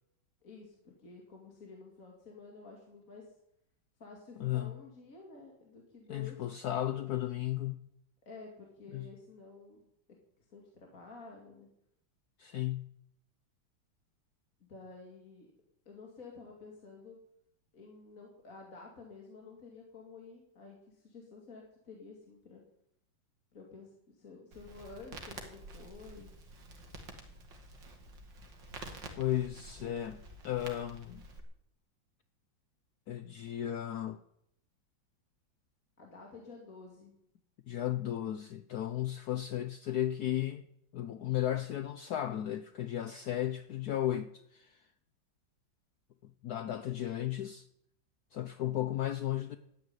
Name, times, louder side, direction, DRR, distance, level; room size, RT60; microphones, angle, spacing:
voice 1, 0.4-3.3 4.0-6.4 8.3-9.8 10.5-11.7 14.7-15.5 15.9-17.2 17.7-22.6 23.5-26.3 36.0-37.1, left 4 dB, 45° left, 2.8 m, -51 dB
voice 2, 4.4-4.7 6.1-7.9 8.9-9.1 12.4-13.0 29.2-31.2 33.1-34.2 37.7-40.6 40.9-44.9 46.2-47.7 48.3-49.6, left 12 dB, 65° left, 1.1 m, -35 dB
Crackle, 24.5-31.4, right 2 dB, 65° right, 2.8 m, -49 dB
13.0 x 9.4 x 9.7 m
omnidirectional pair, 2.1 m